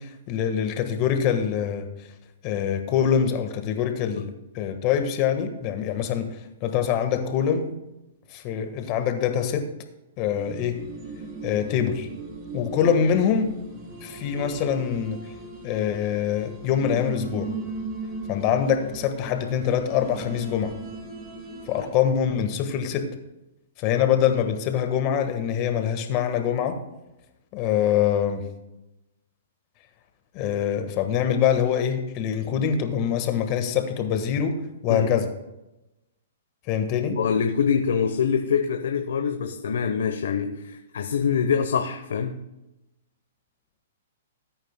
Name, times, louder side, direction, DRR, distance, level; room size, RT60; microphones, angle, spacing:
voice 1, 0.0-1.9 2.4-6.3 6.6-7.7 8.3-9.7 10.2-10.8 11.4-12.1 12.5-13.6 14.0-15.2 15.6-17.5 18.3-20.7 21.7-23.1 23.8-26.8 27.5-28.4 30.3-34.6 34.8-35.3 36.7-37.2, left 8 dB, 35° left, 7 dB, 1.4 m, -24 dB
sound 1, 10.3-21.9, right 3 dB, 30° right, 2.6 m, -38 dB
voice 2, 37.2-42.4, left 6 dB, 75° left, 5 dB, 0.9 m, -25 dB
19.0 x 8.9 x 2.2 m, 0.96 s
hypercardioid pair, 145°, 0 cm